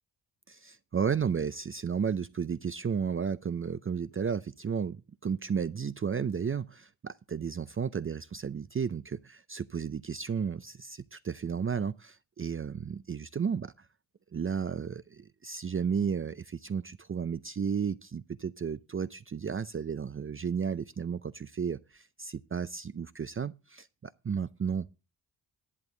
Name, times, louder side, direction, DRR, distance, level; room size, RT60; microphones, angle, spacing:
voice 1, 0.5-13.9 14.3-24.9, right 6 dB, 30° right, 0.6 m, -33 dB
11.0 x 10.5 x 3.9 m
cardioid pair, 70°, 45 cm